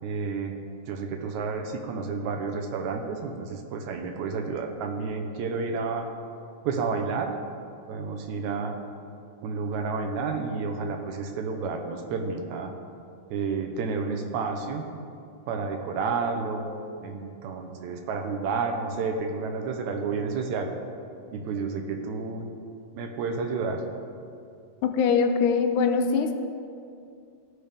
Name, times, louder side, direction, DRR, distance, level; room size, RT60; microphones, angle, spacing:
voice 1, 0.0-0.6 0.9-6.1 6.6-7.4 7.9-8.8 9.4-12.7 13.3-14.9 15.5-16.7 17.0-20.7 21.3-22.5 23.0-23.8, right 4 dB, 80° right, 4 dB, 1.9 m, -30 dB
voice 2, 24.8-26.3, left 5 dB, 85° left, 6 dB, 2.0 m, -22 dB
15.0 x 5.1 x 3.4 m, 2.5 s
omnidirectional pair, 3.5 m